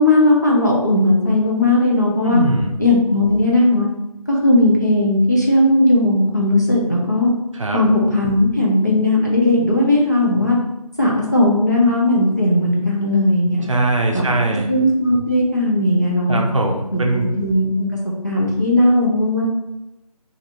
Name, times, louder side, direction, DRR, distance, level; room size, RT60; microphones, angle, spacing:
voice 1, 0.0-2.4 2.8-3.9 4.3-7.3 7.7-10.6 11.0-13.6 14.1-14.3 14.7-16.4 16.9-19.5, left 1 dB, 30° left, -4 dB, 0.4 m, -17 dB
voice 2, 2.2-2.7 7.5-7.8 13.7-14.7 16.3-17.3, right 2 dB, 55° right, 1 dB, 0.5 m, -20 dB
3.1 x 2.5 x 2.5 m, 0.92 s
figure-of-eight pair, 170°, 20 cm